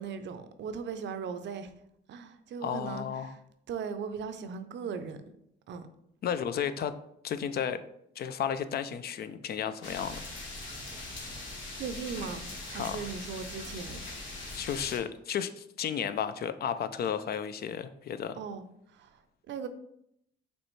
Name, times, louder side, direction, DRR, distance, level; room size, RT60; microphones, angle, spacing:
voice 1, 0.0-1.7 2.1-3.4 3.7-5.2 5.7-5.9 11.7-14.0 18.3-18.6 18.9-19.2 19.5-19.7, right 6 dB, 65° right, 0.5 m, -38 dB
voice 2, 2.6-3.3 6.2-6.9 7.2-7.8 8.2-10.2 12.8-13.0 14.5-18.4, left 8 dB, 55° left, 0.4 m, -33 dB
sound 1, 9.8-15.0, left 2 dB, 75° left, 1.3 m, -41 dB
5.2 x 3.3 x 3.1 m
cardioid pair, 90°, 20 cm